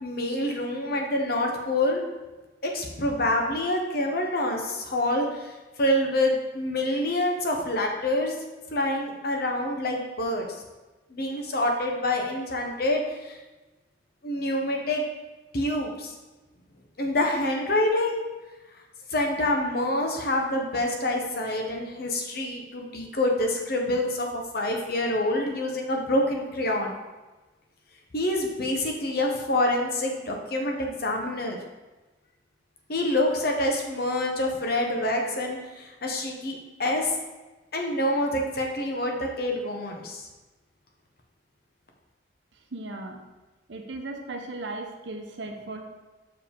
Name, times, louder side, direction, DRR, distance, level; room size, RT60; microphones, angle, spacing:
voice 1, 0.0-2.0 2.6-5.5 5.8-8.3 8.7-10.5 11.1-13.4 14.2-15.0 15.5-16.1 17.0-18.2 19.1-24.3 24.5-26.9 28.1-31.6 32.9-37.1 37.7-40.2, left 1 dB, 50° left, 1 dB, 0.9 m, -26 dB
voice 2, 42.7-43.2 43.7-45.8, right 2 dB, 65° right, 3 dB, 0.8 m, -36 dB
6.6 x 4.8 x 3.6 m, 1.1 s
head